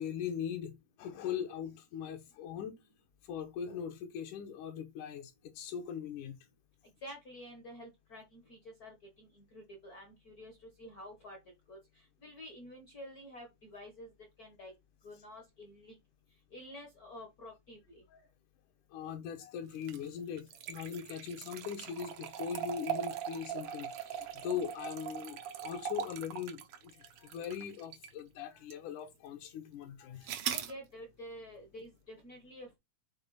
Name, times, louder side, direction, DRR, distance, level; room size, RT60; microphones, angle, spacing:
voice 1, 0.0-2.8 3.2-6.4 18.1-18.2 18.9-30.4, left 8 dB, 75° left, 2.3 m, -40 dB
voice 2, 7.0-11.4 11.7-11.8 12.2-14.1 14.4-14.7 15.0-16.0 16.5-18.0 30.4-32.8, left 1 dB, 55° left, 1.0 m, -49 dB
sound 1, 19.7-28.2 28.7-28.8 30.2-30.7, right 9 dB, 80° right, 1.3 m, -40 dB
6.9 x 4.0 x 4.1 m
omnidirectional pair, 3.6 m